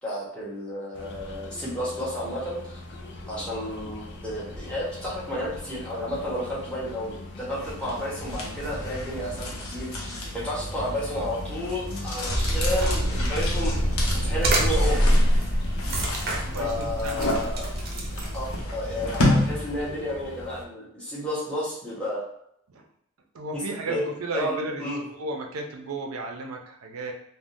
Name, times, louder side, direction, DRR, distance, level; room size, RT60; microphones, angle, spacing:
voice 1, 0.0-2.8 3.3-15.2 16.6-17.7 18.3-22.2 23.9-24.0 24.3-25.0, equal, 5° left, -8 dB, 0.9 m, -32 dB
sound 1, 0.9-20.7, left 3 dB, 55° left, 0.4 m, -41 dB
sound 2, 7.6-20.0, left 1 dB, 90° left, 0.8 m, -31 dB
sound 3, 12.3-18.6, equal, 45° right, 0.6 m, -25 dB
voice 2, 16.4-17.3 22.7-22.8 23.3-27.1, right 2 dB, 90° right, 3 dB, 0.5 m, -34 dB
3.5 x 2.2 x 2.6 m, 0.74 s
head